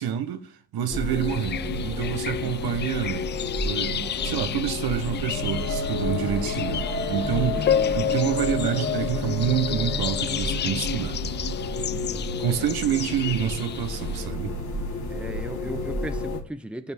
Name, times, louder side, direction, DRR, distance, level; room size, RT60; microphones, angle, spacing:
voice 1, 0.0-3.3 3.6-7.7 7.9-11.2 12.4-14.6, right 9 dB, 55° right, 1.5 m, -28 dB
sound 1, 0.9-16.4, left 2 dB, 55° left, 4.4 m, -30 dB
sound 2, 1.1-14.3, left 9 dB, 25° left, 0.4 m, -32 dB
voice 2, 2.4-2.8 6.3-6.5 7.4-8.0 11.9-12.7 15.1-16.9, right 1 dB, 5° right, 1.1 m, -38 dB
15.0 x 5.3 x 4.6 m
hypercardioid pair, 50°, 44 cm